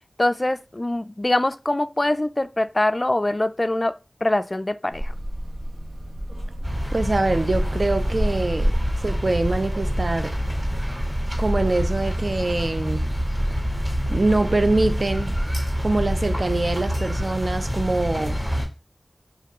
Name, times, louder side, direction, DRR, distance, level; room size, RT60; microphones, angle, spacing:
voice 1, 0.2-5.1, left 1 dB, 35° left, 0.3 m, -23 dB
sound 1, 4.9-16.2, equal, 85° right, 0.9 m, -30 dB
sound 2, 6.6-18.7, equal, 15° right, 2.2 m, -27 dB
voice 2, 6.9-8.7 9.0-10.3 11.4-13.0 14.1-15.4 15.8-18.4, right 2 dB, 55° right, 0.4 m, -24 dB
3.4 x 3.4 x 3.0 m
wide cardioid pair, 55°, 0 cm